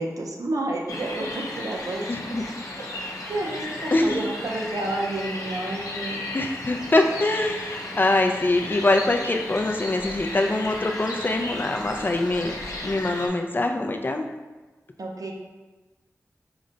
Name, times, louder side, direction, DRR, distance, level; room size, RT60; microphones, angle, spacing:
voice 1, 0.0-2.1 2.3-2.5 2.9-6.2 15.0-15.3, right 2 dB, 90° right, 0 dB, 0.6 m, -30 dB
sound 1, 0.9-13.3, left 2 dB, 80° left, 0.6 m, -35 dB
voice 2, 2.1-2.4 3.9-4.2 6.3-12.5 12.8-14.3, left 2 dB, 35° left, 4 dB, 0.3 m, -23 dB
4.8 x 2.1 x 3.8 m, 1.2 s
wide cardioid pair, 80°, 6 cm